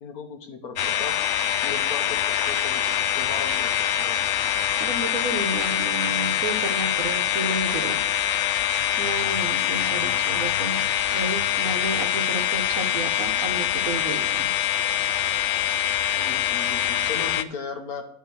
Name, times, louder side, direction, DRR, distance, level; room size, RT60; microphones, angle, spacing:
voice 1, 0.0-1.2 1.6-2.8 3.1-4.2 10.0-10.3 16.1-18.0, left 5 dB, 85° left, 5 dB, 1.7 m, -37 dB
sound 1, 0.8-17.4, left 11 dB, 65° left, 0.8 m, -24 dB
voice 2, 4.8-8.0 9.0-10.8 11.1-14.5, right 2 dB, 70° right, 6 dB, 1.4 m, -31 dB
11.5 x 3.8 x 6.2 m, 0.66 s
omnidirectional pair, 1.5 m